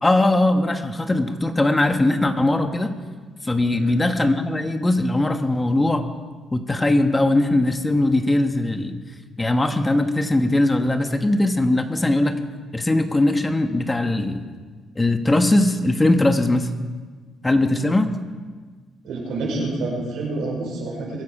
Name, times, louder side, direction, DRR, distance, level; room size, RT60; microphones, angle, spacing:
voice 1, 0.0-2.9 3.4-6.0 6.5-9.0 9.4-12.4 12.7-14.4 15.0-16.7 17.4-18.1, left 2 dB, 15° left, 7 dB, 1.2 m, -20 dB
voice 2, 19.0-21.2, right 2 dB, 85° right, -2 dB, 5.5 m, -28 dB
23.0 x 10.5 x 4.9 m, 1.5 s
cardioid pair, 90°, 0 cm